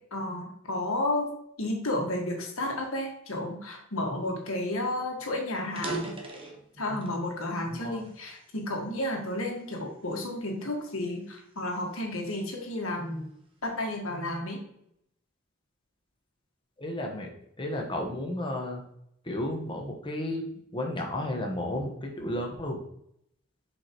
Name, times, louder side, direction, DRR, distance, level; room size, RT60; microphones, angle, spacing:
voice 1, 0.1-1.3 1.6-6.2 6.8-13.3 13.6-14.6, left 1 dB, 80° left, 1 dB, 1.7 m, -32 dB
sound 1, 5.0-5.1 5.6-7.2 7.8-9.0 9.6-9.9 10.5-12.5, right 2 dB, 25° right, 1.0 m, -40 dB
voice 2, 16.8-17.3 17.6-18.8 19.2-20.4 20.7-22.8, left 1 dB, 25° left, 1 dB, 1.2 m, -32 dB
7.1 x 5.1 x 3.0 m, 0.74 s
head